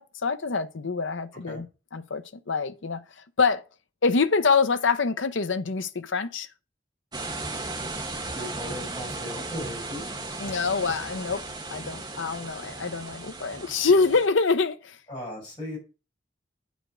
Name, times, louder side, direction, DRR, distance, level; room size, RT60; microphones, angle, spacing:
voice 1, 0.0-1.7 1.9-3.0 3.4-3.6 4.0-6.5 10.4-11.4 11.7-15.0, left 4 dB, 75° left, 0.8 m, -25 dB
sound 1, 7.1-14.3, right 2 dB, 20° right, 1.3 m, -36 dB
voice 2, 8.3-10.0 15.1-15.8, equal, 25° left, 5.7 m, -37 dB
8.9 x 5.1 x 6.4 m
head